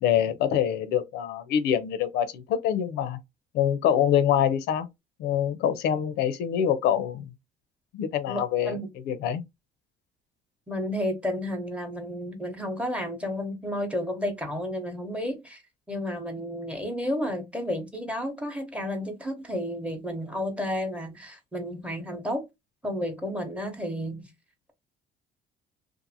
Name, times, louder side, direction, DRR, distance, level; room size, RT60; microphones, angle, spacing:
voice 1, 0.0-3.2 3.5-4.9 5.2-7.3 7.9-8.8 9.1-9.4, left 9 dB, 80° left, 0.5 m, -25 dB
voice 2, 8.3-8.9 10.7-15.6 15.9-22.4 22.8-24.3, left 1 dB, 5° right, 0.8 m, -32 dB
2.5 x 2.4 x 2.7 m
cardioid pair, 110°, 17 cm